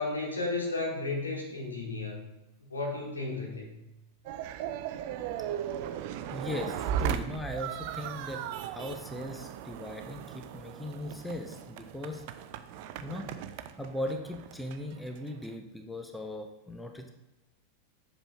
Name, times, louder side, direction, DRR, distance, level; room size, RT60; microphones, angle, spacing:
voice 1, 0.0-2.2 2.7-3.7, left 3 dB, 75° left, -2 dB, 1.8 m, -33 dB
sound 1, 4.3-15.5, right 10 dB, 45° right, 0.4 m, -37 dB
voice 2, 6.3-12.2 13.0-13.3 13.8-17.1, left 1 dB, 5° left, 3 dB, 0.7 m, -38 dB
7.7 x 6.2 x 2.3 m, 1.0 s
figure-of-eight pair, 90°, 0 cm